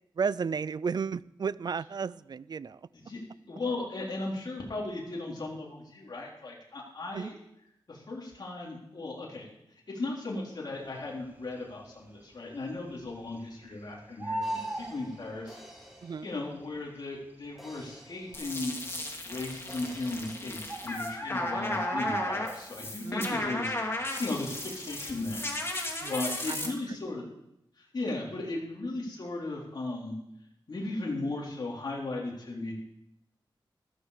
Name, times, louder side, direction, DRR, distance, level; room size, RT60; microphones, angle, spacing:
voice 1, 0.2-2.8 7.1-7.3 16.0-16.3 23.0-23.5 26.0-26.1 26.5-26.7, right 6 dB, 50° right, 19 dB, 0.4 m, -33 dB
voice 2, 3.5-7.4 7.9-9.4 9.9-15.6 16.2-18.8 19.2-25.5 26.1-27.3 27.8-30.1 30.7-32.7, left 2 dB, 55° left, -3 dB, 3.7 m, -36 dB
Bird, 11.3-11.9 12.2-12.3 12.6-13.8 14.0-15.9 16.7-16.8 17.4-17.5 17.7-17.8 18.5-18.9 19.9-20.0 20.4-20.5 20.7-23.0 23.3-23.6 23.9-25.3 25.7-25.9, right 1 dB, 20° right, 1.2 m, -36 dB
sound 1, 14.4-17.0 17.6-19.3 19.7-20.5, equal, ahead, 3.4 m, -53 dB
sound 2, 18.3-26.7, left 2 dB, 30° left, 2.4 m, -35 dB
14.0 x 14.0 x 5.0 m, 0.79 s
wide cardioid pair, 135°, 9 cm